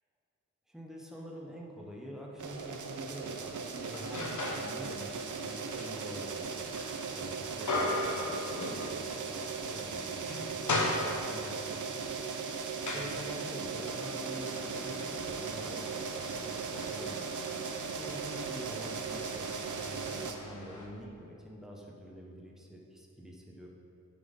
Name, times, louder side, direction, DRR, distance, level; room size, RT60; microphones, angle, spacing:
voice 1, 0.7-6.8 7.1-12.2 12.5-17.3 17.6-23.7, equal, ahead, -3 dB, 1.3 m, -46 dB
sound 1, 2.4-20.3, right 5 dB, 65° right, 0.8 m, -38 dB
sound 2, 3.8-4.7 5.1-9.2 9.6-9.7 10.1-11.5 12.2-20.9, left 2 dB, 60° left, 1.4 m, -38 dB
10.0 x 6.1 x 5.5 m, 2.7 s
wide cardioid pair, 120°, 33 cm